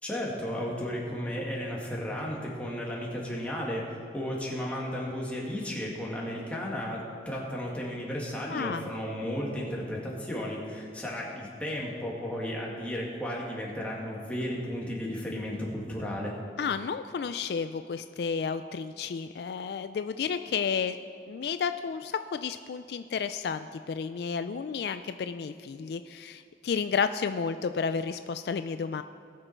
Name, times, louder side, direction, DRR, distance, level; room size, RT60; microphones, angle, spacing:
voice 1, 0.0-16.3, equal, 5° left, -4 dB, 1.9 m, -34 dB
voice 2, 8.5-8.9 16.6-21.0 21.3-29.0, left 6 dB, 65° left, 10 dB, 0.3 m, -32 dB
19.0 x 6.7 x 4.5 m, 2.5 s
head